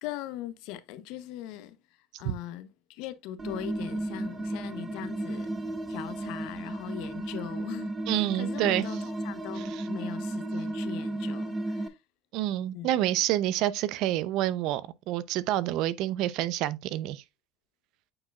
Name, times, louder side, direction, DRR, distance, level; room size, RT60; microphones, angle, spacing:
voice 1, 0.0-5.6 5.9-12.0 12.7-13.0, left 12 dB, 65° left, 0.8 m, -41 dB
sound 1, 3.4-11.9, right 1 dB, 15° right, 0.8 m, -34 dB
voice 2, 8.1-8.8 12.3-14.8 15.1-17.2, right 13 dB, 60° right, 0.5 m, -28 dB
8.7 x 4.6 x 2.3 m
cardioid pair, 145°, 0 cm